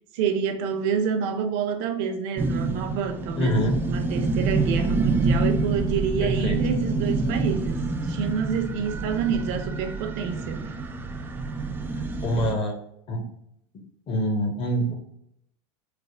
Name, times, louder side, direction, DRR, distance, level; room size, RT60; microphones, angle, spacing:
voice 1, 0.1-3.6 3.8-10.6, right 7 dB, 60° right, 7 dB, 0.5 m, -28 dB
sound 1, 2.4-12.5, right 3 dB, 15° right, 0.3 m, -27 dB
voice 2, 3.4-3.8 6.2-6.6 12.0-12.8 13.1-13.2 13.7-14.9, equal, 35° left, 4 dB, 0.7 m, -26 dB
3.2 x 2.0 x 3.5 m, 0.75 s
supercardioid pair, 120°, 15 cm